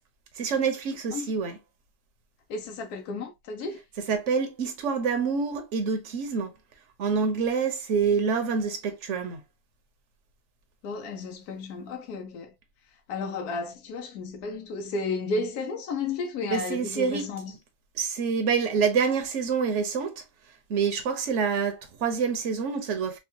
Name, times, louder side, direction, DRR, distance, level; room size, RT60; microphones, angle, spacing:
voice 1, 0.4-1.6 4.1-6.5 7.0-9.4 16.5-17.6 17.9-20.2 20.7-23.2, right 5 dB, 55° right, 1.0 m, -27 dB
voice 2, 2.5-3.8 10.8-12.5 13.1-17.5, left 3 dB, 80° left, 1.2 m, -33 dB
4.5 x 2.2 x 2.8 m
omnidirectional pair, 1.6 m